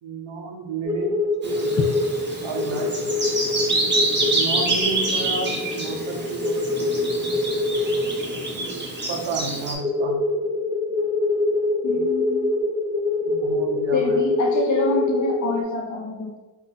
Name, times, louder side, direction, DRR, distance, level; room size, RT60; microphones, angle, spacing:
voice 1, 0.0-1.8 2.4-3.1 4.3-6.9 8.5-10.2 10.4-10.7 11.9-12.0 13.2-14.3, right 4 dB, 85° right, 1 dB, 0.7 m, -32 dB
sound 1, 0.8-9.2 9.8-15.6, left 2 dB, 10° right, 0.6 m, -25 dB
Bird vocalization bird call bird song, 1.4-9.7, right 2 dB, 25° right, 1.0 m, -27 dB
voice 2, 11.8-12.5 13.9-16.4, left 3 dB, 45° left, 1 dB, 0.5 m, -26 dB
3.6 x 2.2 x 4.1 m, 1.1 s
wide cardioid pair, 60°, 44 cm